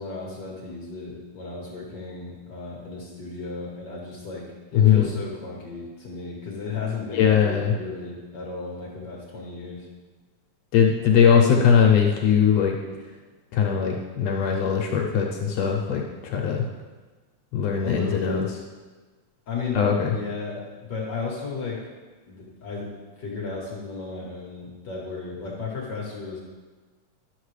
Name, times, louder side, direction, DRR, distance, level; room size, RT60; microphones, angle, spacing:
voice 1, 0.0-4.5 4.7-9.9 17.8-18.5 19.5-21.9 22.3-22.9 23.2-26.4, left 4 dB, 55° left, -3 dB, 1.2 m, -34 dB
voice 2, 4.7-5.1 7.1-7.8 10.7-12.8 13.5-16.7 17.5-18.4 19.8-20.1, left 7 dB, 70° left, 0 dB, 1.7 m, -20 dB
11.5 x 6.8 x 3.2 m, 1.3 s
omnidirectional pair, 3.4 m